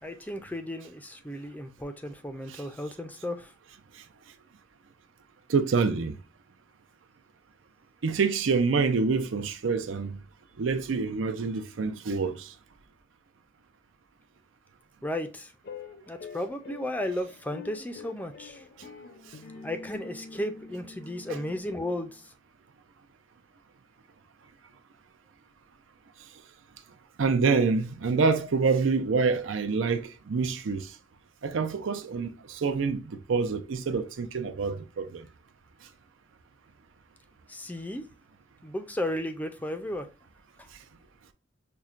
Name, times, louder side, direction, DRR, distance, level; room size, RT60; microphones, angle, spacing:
voice 1, 0.0-3.5 15.0-15.5 16.1-18.6 19.6-22.2 37.5-38.0 38.6-40.1, left 1 dB, 10° left, 0.4 m, -34 dB
voice 2, 5.5-6.2 8.0-10.2 10.6-12.5 27.2-30.9 31.4-35.3, right 4 dB, 85° right, 0.5 m, -27 dB
sound 1, 15.6-22.2, left 5 dB, 55° left, 0.6 m, -46 dB
5.7 x 2.1 x 2.4 m
head